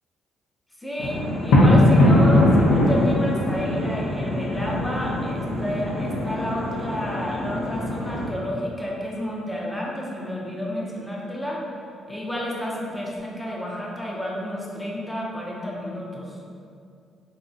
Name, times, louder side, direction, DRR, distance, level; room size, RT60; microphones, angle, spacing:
voice 1, 0.8-11.6 12.1-16.4, equal, 10° left, -3 dB, 0.5 m, -30 dB
sound 1, 1.0-8.3, left 1 dB, 85° left, 0.5 m, -21 dB
3.6 x 2.0 x 2.5 m, 2.4 s
cardioid pair, 90°, 0 cm